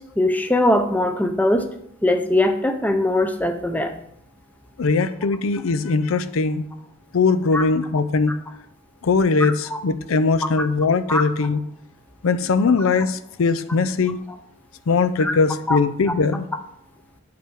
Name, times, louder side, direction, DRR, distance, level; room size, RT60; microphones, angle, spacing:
voice 1, 0.2-1.7 2.0-4.0 7.5-7.6 9.4-9.8 11.1-11.2 15.2-15.3 15.7-15.8, left 1 dB, 10° left, 6 dB, 0.6 m, -21 dB
voice 2, 4.8-6.6 7.1-8.3 9.0-11.6 12.2-14.2 14.9-16.5, left 4 dB, 75° left, 12 dB, 0.5 m, -20 dB
8.6 x 5.9 x 4.6 m, 0.74 s
head